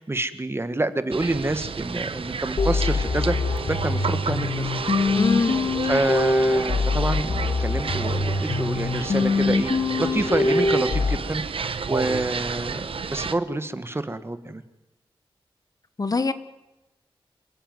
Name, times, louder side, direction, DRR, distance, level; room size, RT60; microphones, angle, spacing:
voice 1, 0.0-4.7 5.5-5.6 5.8-9.7 10.0-14.6, right 2 dB, 25° right, 11 dB, 1.6 m, -27 dB
sound 1, 1.1-13.3, right 5 dB, 70° right, 1.1 m, -31 dB
sound 2, 2.6-11.2, left 3 dB, 70° left, 2.3 m, -24 dB
voice 2, 5.2-5.6 16.0-16.3, left 4 dB, 40° left, 12 dB, 1.1 m, -23 dB
26.5 x 16.0 x 9.4 m, 1.0 s
wide cardioid pair, 95°, 10 cm